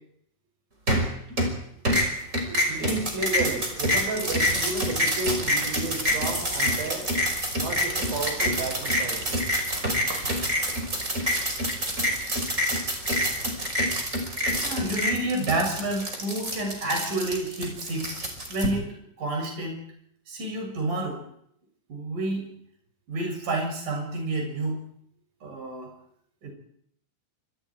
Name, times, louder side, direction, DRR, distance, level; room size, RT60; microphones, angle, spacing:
sound 1, 0.9-1.6 1.8-18.7, equal, 15° right, 5.4 m, -26 dB
voice 1, 1.1-1.5 2.2-7.1 7.6-9.3, right 3 dB, 90° right, 2 dB, 9.4 m, -33 dB
voice 2, 14.6-18.2 18.5-18.9 19.2-19.8 20.3-21.2 21.9-22.5 23.1-24.8 25.4-25.9 26.4-26.5, right 2 dB, 40° right, 1 dB, 8.3 m, -29 dB
28.0 x 27.0 x 4.8 m, 0.71 s
omnidirectional pair, 5.8 m